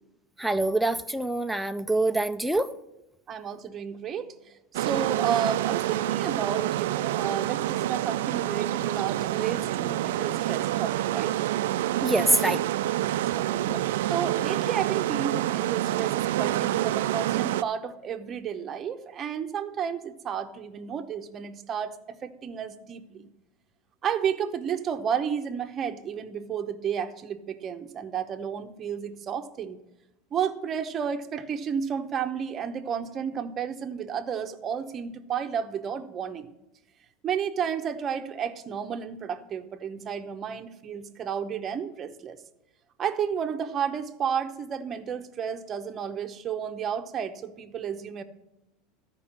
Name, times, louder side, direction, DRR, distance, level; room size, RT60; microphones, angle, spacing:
voice 1, 0.4-2.7 12.0-12.6 13.7-13.8, right 2 dB, ahead, 8 dB, 0.4 m, -25 dB
voice 2, 3.3-4.3 4.7-11.4 13.3-13.8 14.1-23.3 24.0-29.8 30.3-36.5 37.2-42.4 43.0-48.2, right 7 dB, 25° right, 8 dB, 0.8 m, -32 dB
sound 1, 4.7-17.6, right 14 dB, 85° right, 0.3 m, -27 dB
13.0 x 5.3 x 7.3 m, 0.90 s
supercardioid pair, 145°, 0 cm